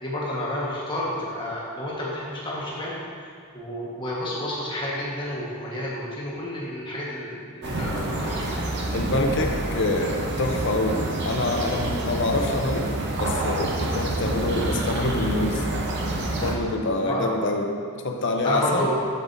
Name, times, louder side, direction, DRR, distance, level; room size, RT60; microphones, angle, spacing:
voice 1, 0.0-3.3 3.5-8.7 17.0-17.3 18.4-19.0, left 1 dB, 20° left, -6 dB, 1.3 m, -30 dB
sound 1, 7.6-16.5, right 1 dB, 50° right, 0.8 m, -28 dB
voice 2, 8.9-12.9 13.2-15.6 16.4-17.7 18.0-18.9, left 2 dB, 55° left, 2 dB, 0.7 m, -26 dB
8.2 x 6.8 x 2.6 m, 2.3 s
head